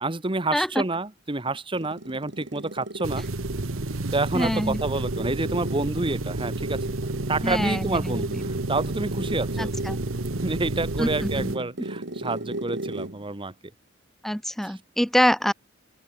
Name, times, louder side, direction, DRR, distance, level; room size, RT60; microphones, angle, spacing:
voice 1, 0.0-3.2 4.1-6.9 7.3-9.7 10.4-13.5 14.6-14.7, right 2 dB, 25° right, 1.1 m, -28 dB
voice 2, 0.5-0.8 4.3-4.8 7.4-8.4 9.6-10.0 11.0-11.5 14.2-15.5, equal, ahead, 0.5 m, -25 dB
sound 1, 1.5-13.2, right 1 dB, 60° right, 2.5 m, -34 dB
sound 2, 3.0-11.6, right 2 dB, 80° right, 1.1 m, -32 dB
open air
head